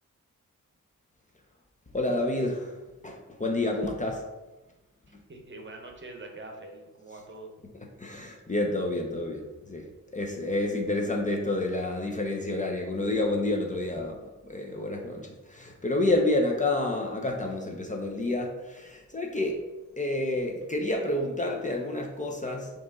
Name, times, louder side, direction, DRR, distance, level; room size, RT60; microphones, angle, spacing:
voice 1, 1.9-2.8 3.0-4.2 8.0-19.6 20.0-22.8, left 2 dB, 25° left, 1 dB, 0.6 m, -29 dB
voice 2, 5.1-7.5, right 2 dB, 35° right, 2 dB, 0.9 m, -44 dB
4.8 x 3.1 x 3.6 m, 1.1 s
cardioid pair, 85°, 32 cm